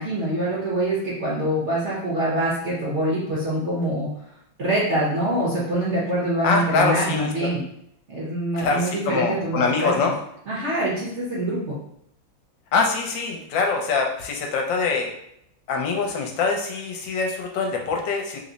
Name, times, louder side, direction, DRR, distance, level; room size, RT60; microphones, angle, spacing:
voice 1, 0.0-4.1 4.6-7.6 8.1-10.0 10.5-11.8, right 1 dB, 55° right, -7 dB, 0.8 m, -25 dB
voice 2, 6.4-7.5 8.6-10.1 12.7-15.1 15.7-18.4, left 4 dB, 75° left, 2 dB, 1.3 m, -24 dB
3.5 x 2.0 x 3.8 m, 0.75 s
omnidirectional pair, 2.1 m